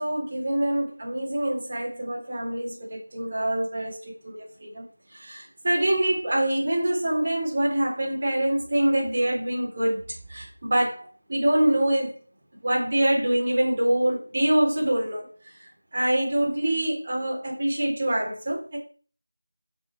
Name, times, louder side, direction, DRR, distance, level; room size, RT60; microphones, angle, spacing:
voice 1, 0.0-4.8 5.1-10.0 10.3-12.1 12.6-15.3 15.6-18.8, right 1 dB, 35° right, 3.6 m, -25 dB
8.1 x 5.9 x 5.8 m
figure-of-eight pair, 170°, 0 cm